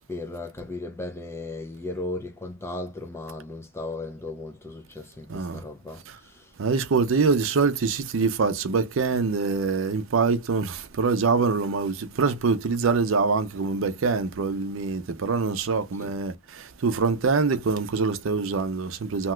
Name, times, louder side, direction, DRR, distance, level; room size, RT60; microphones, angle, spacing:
voice 1, 0.1-6.5 16.0-16.1, left 2 dB, 10° left, 0.4 m, -36 dB
voice 2, 5.3-5.6 6.1-6.2 6.6-19.3, right 4 dB, 70° right, 0.5 m, -24 dB
2.8 x 2.3 x 3.1 m
head